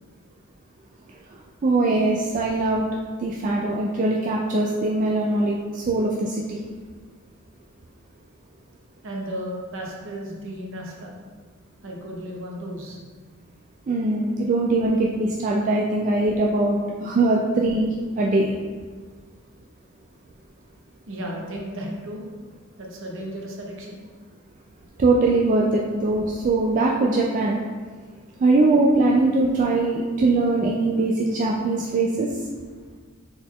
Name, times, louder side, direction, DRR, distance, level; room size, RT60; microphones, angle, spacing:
voice 1, 1.6-2.9 3.2-6.6 13.9-18.5 25.0-27.6 28.4-32.3, right 2 dB, 35° right, -2 dB, 0.3 m, -21 dB
voice 2, 9.0-11.1 11.8-13.0 21.1-22.3 22.8-24.0, equal, 60° right, -1 dB, 0.8 m, -34 dB
4.1 x 3.9 x 3.0 m, 1.5 s
head